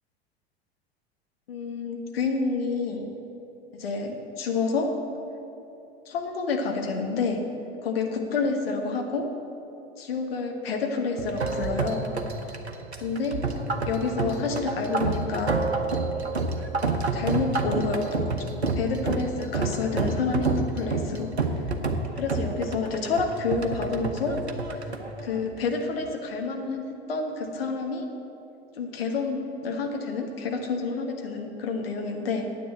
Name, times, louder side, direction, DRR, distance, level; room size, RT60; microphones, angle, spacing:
voice 1, 1.5-3.1 3.8-4.9 6.1-7.4 7.8-9.3 10.0-12.1 13.0-13.4 13.8-15.6 17.1-18.3 18.7-21.3 22.2-24.4 25.2-28.0 28.8-32.5, left 4 dB, 65° left, 3 dB, 1.6 m, -29 dB
sound 1, 11.2-26.0, right 3 dB, 85° right, 0.9 m, -29 dB
9.6 x 8.7 x 7.8 m, 2.9 s
figure-of-eight pair, 80°, 32 cm